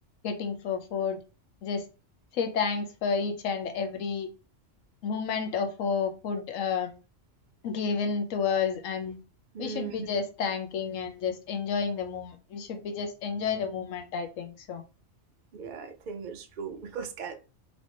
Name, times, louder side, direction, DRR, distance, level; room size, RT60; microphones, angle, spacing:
voice 1, 0.2-1.2 1.6-1.8 2.3-4.3 5.0-6.9 7.6-9.2 9.6-14.8, left 6 dB, 90° left, 1.0 m, -30 dB
voice 2, 9.5-10.1 15.5-17.3, right 6 dB, 55° right, 0.5 m, -38 dB
3.1 x 2.8 x 2.9 m
omnidirectional pair, 1.3 m